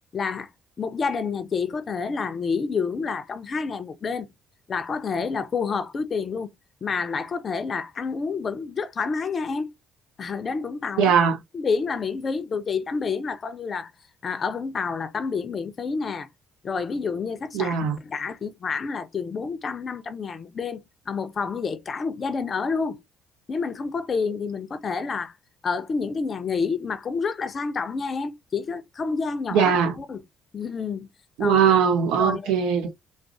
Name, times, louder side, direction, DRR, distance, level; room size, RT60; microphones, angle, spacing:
voice 1, 0.1-0.5 0.8-4.3 4.7-6.5 6.8-9.7 10.2-11.1 11.5-13.9 14.2-16.3 16.6-23.0 23.5-25.3 25.6-30.2 30.5-31.1 31.4-31.6 32.2-32.5, left 5 dB, 40° left, 0.5 m, -29 dB
voice 2, 11.0-11.4 17.5-18.0 29.5-29.9 31.4-32.9, right 7 dB, 70° right, 0.6 m, -20 dB
3.6 x 2.1 x 2.9 m
figure-of-eight pair, 50°, 0 cm